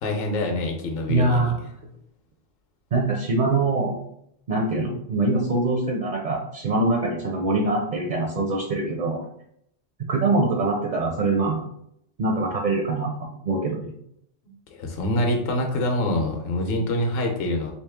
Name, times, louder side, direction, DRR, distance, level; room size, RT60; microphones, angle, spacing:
voice 1, 0.0-1.5 14.7-17.7, left 1 dB, 60° left, 2 dB, 0.8 m, -25 dB
voice 2, 1.1-1.6 2.9-4.0 4.5-9.2 10.1-11.6 12.2-13.1 13.4-13.9, right 2 dB, 55° right, 0 dB, 0.5 m, -23 dB
3.0 x 3.0 x 3.5 m, 0.74 s
omnidirectional pair, 1.2 m